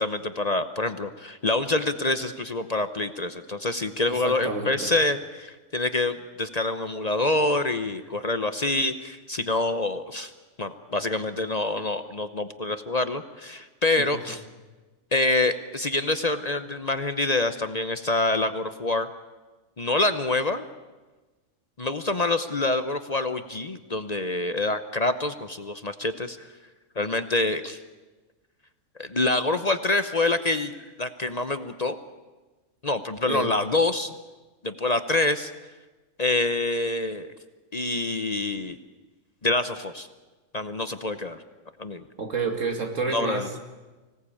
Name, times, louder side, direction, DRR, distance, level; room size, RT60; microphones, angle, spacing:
voice 1, 0.0-10.3 10.6-14.4 15.1-19.1 19.8-20.7 21.8-26.4 27.0-27.8 29.0-32.0 32.8-34.2 34.6-35.5 36.2-37.3 37.7-38.8 39.4-40.1 40.5-41.4 41.8-42.0 43.1-43.5, left 2 dB, 35° left, 10 dB, 0.9 m, -26 dB
voice 2, 4.1-4.9 14.1-14.4 33.2-33.5 42.2-43.6, right 4 dB, 75° right, 4 dB, 2.8 m, -30 dB
24.5 x 18.0 x 8.5 m, 1.2 s
omnidirectional pair, 1.3 m